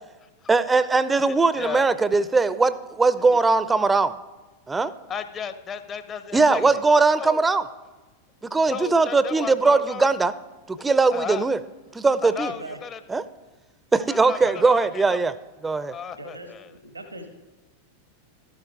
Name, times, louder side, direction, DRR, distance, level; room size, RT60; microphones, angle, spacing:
voice 1, 0.5-4.1 4.7-4.9 6.3-7.6 8.4-10.3 10.7-11.6 11.9-12.5 13.1-13.2 13.9-15.3 15.6-15.9, right 3 dB, 10° right, 16 dB, 0.5 m, -20 dB
voice 2, 1.3-1.9 3.3-3.4 5.1-6.8 7.2-7.4 8.7-10.1 10.8-11.5 12.2-13.0 14.1-15.2 15.9-16.7, left 7 dB, 25° left, 11 dB, 0.7 m, -34 dB
voice 3, 12.3-12.8 14.4-14.8 16.2-17.3, right 2 dB, 85° right, 6 dB, 1.2 m, -39 dB
12.5 x 8.4 x 4.6 m, 1.2 s
figure-of-eight pair, 90°, 0 cm